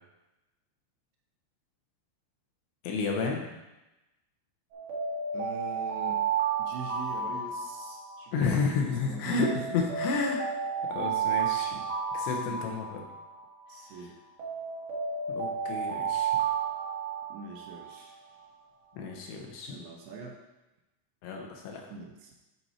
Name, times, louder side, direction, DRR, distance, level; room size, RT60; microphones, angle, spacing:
voice 1, 2.8-3.5 8.3-10.4 10.9-11.8 12.1-13.1 15.3-16.4 19.0-19.8 21.2-21.8, left 4 dB, 75° left, 1 dB, 2.9 m, -31 dB
Alarm, 4.7-8.9 9.4-13.9 14.4-18.2, right 6 dB, 50° right, 2.0 m, -32 dB
voice 2, 5.3-6.2 6.6-9.8 12.2-12.6 13.7-14.2 17.3-18.1 19.7-20.4 21.9-22.3, right 4 dB, 75° right, 0 dB, 2.8 m, -43 dB
11.0 x 4.5 x 4.4 m, 1.0 s
omnidirectional pair, 5.2 m